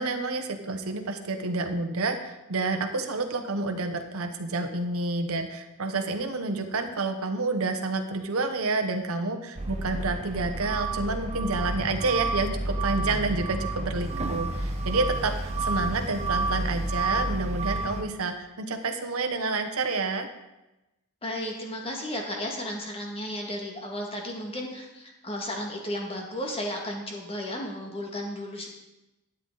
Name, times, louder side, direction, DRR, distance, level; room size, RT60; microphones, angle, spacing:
voice 1, 0.0-20.3, right 3 dB, 70° right, 6 dB, 0.9 m, -29 dB
sound 1, 9.6-18.0, right 2 dB, 30° right, 0.9 m, -30 dB
voice 2, 21.2-28.7, left 1 dB, 25° left, 0 dB, 1.9 m, -34 dB
12.0 x 9.1 x 3.9 m, 0.98 s
head